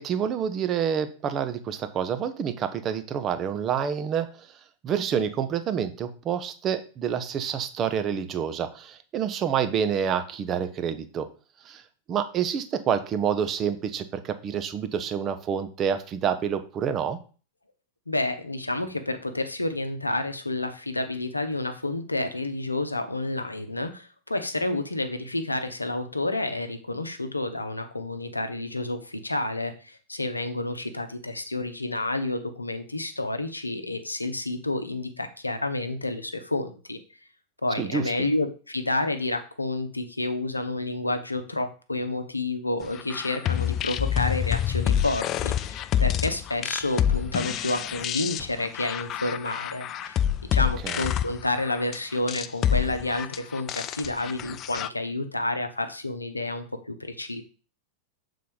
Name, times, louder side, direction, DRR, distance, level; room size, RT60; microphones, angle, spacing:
voice 1, 0.0-4.3 4.8-11.3 11.7-11.8 12.1-17.2 37.8-38.0 50.8-51.0, right 8 dB, 30° right, 9 dB, 0.8 m, -28 dB
voice 2, 18.1-37.0 37.6-50.2 50.5-57.4, left 2 dB, 85° left, 8 dB, 0.8 m, -30 dB
sound 1, 42.9-54.9, left 10 dB, 35° left, 0.3 m, -27 dB
6.9 x 3.9 x 4.9 m, 0.37 s
figure-of-eight pair, 90°, 0 cm